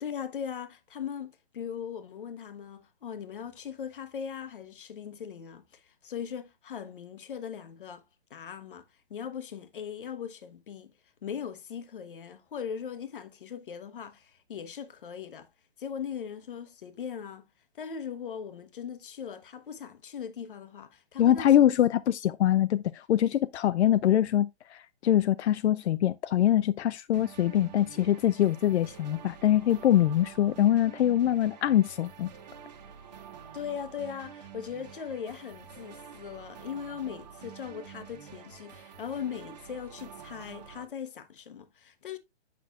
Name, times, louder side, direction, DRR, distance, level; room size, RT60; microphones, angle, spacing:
voice 1, 0.0-8.0 8.3-10.9 11.2-15.5 15.8-17.5 17.8-21.5 33.5-42.2, left 7 dB, 50° left, 1.0 m, -39 dB
voice 2, 21.2-32.3, left 11 dB, 85° left, 0.5 m, -24 dB
sound 1, 27.1-40.8, right 7 dB, 40° right, 1.4 m, -48 dB
8.3 x 5.9 x 2.4 m
hypercardioid pair, 180°, 33 cm